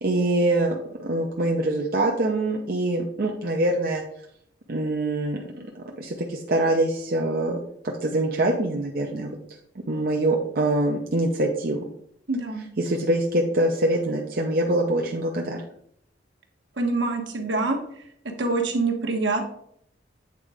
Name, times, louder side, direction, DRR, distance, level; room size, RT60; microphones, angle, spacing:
voice 1, 0.0-4.0 4.7-7.6 8.0-9.4 9.9-11.8 12.8-15.6, right 1 dB, 55° right, 0 dB, 0.8 m, -24 dB
voice 2, 12.3-12.6 16.8-17.8 18.4-19.4, right 3 dB, 75° right, 3 dB, 1.3 m, -25 dB
8.4 x 3.8 x 4.9 m, 0.69 s
head